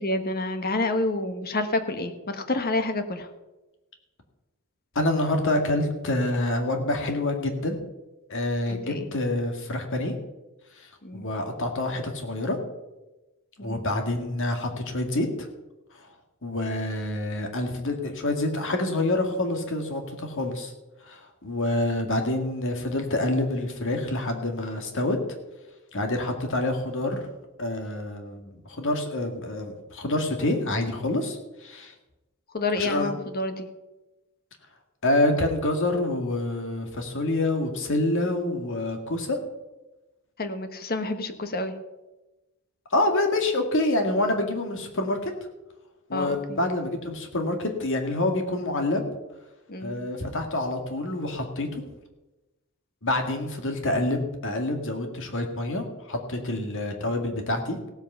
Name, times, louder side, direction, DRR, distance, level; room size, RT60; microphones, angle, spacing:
voice 1, 0.0-3.3 8.7-9.1 11.0-11.2 13.6-13.8 32.5-33.7 40.4-41.7 46.1-46.6 49.7-50.0, left 2 dB, 45° left, 8 dB, 1.2 m, -28 dB
voice 2, 5.0-7.8 8.3-10.1 10.8-10.9 11.1-12.6 13.6-15.5 16.4-20.7 21.0-25.2 25.9-27.2 27.6-31.9 32.8-33.1 35.0-39.4 42.9-45.3 46.1-49.0 49.8-51.8 53.0-57.8, left 2 dB, 60° left, 5 dB, 2.0 m, -27 dB
16.5 x 8.0 x 5.6 m, 1.0 s
head